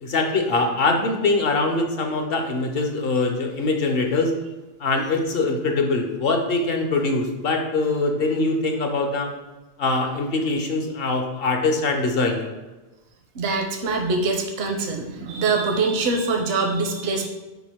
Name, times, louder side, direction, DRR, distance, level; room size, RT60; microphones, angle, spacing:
voice 1, 0.0-4.3 4.8-9.3 9.8-12.5, left 3 dB, 65° left, 4 dB, 1.0 m, -23 dB
voice 2, 13.3-17.3, right 3 dB, 75° right, 3 dB, 0.9 m, -24 dB
5.9 x 4.5 x 3.6 m, 1.1 s
omnidirectional pair, 1.1 m